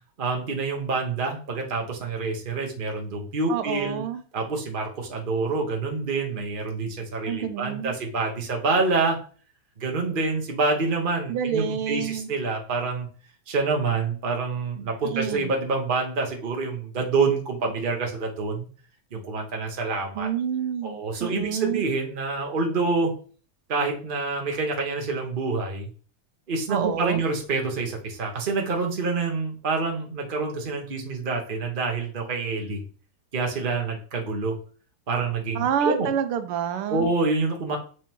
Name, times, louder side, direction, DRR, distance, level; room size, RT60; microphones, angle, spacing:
voice 1, 0.2-4.0 4.3-9.2 9.8-13.1 13.5-18.7 19.1-20.3 20.8-23.1 23.7-25.9 26.5-32.8 33.3-34.6 35.1-36.1 36.9-37.8, right 3 dB, 30° right, 1 dB, 1.1 m, -27 dB
voice 2, 3.5-4.2 7.2-7.9 11.3-12.3 15.0-15.5 20.1-21.9 26.7-27.2 35.5-37.1, right 8 dB, 85° right, 9 dB, 1.6 m, -28 dB
7.1 x 4.7 x 3.0 m, 0.41 s
omnidirectional pair, 2.4 m